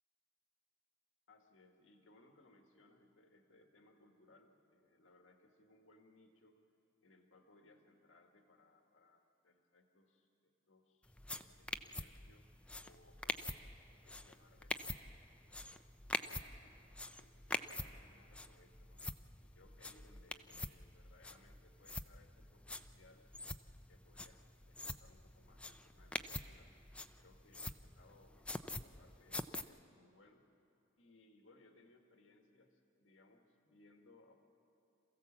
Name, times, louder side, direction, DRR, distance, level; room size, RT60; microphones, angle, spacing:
voice 1, 1.3-6.7 7.0-10.3 10.7-12.5 12.8-14.8 15.5-16.8 17.1-19.0 19.4-23.3 23.9-26.7 27.2-30.5 31.0-34.3, left 2 dB, 85° left, 4 dB, 1.7 m, -67 dB
sound 1, 11.1-29.6, left 2 dB, 5° left, 0.5 m, -46 dB
27.5 x 15.5 x 7.3 m, 2.7 s
head